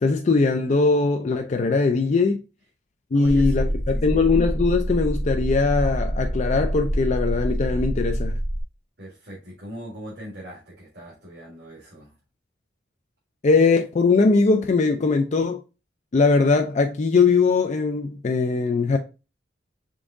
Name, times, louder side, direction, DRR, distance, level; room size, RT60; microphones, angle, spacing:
voice 1, 0.0-2.4 3.1-8.4 13.4-15.6 16.1-19.0, left 4 dB, 40° left, 0.4 m, -20 dB
voice 2, 3.1-4.4 9.0-12.1, right 1 dB, 65° right, 2.0 m, -41 dB
sound 1, 3.2-8.6, equal, 30° right, 0.8 m, -26 dB
5.3 x 3.5 x 2.5 m
head